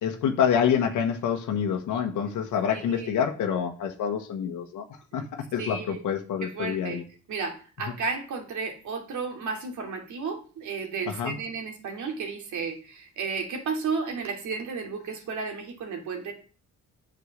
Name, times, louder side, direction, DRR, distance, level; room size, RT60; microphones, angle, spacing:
voice 1, 0.0-4.8 5.1-7.0 11.1-11.3, left 8 dB, 85° left, 3 dB, 1.4 m, -27 dB
voice 2, 2.7-3.2 5.6-6.0 6.4-7.0 7.3-16.3, right 5 dB, 75° right, 3 dB, 2.7 m, -33 dB
8.4 x 6.7 x 6.6 m, 0.38 s
cardioid pair, 90°, 30 cm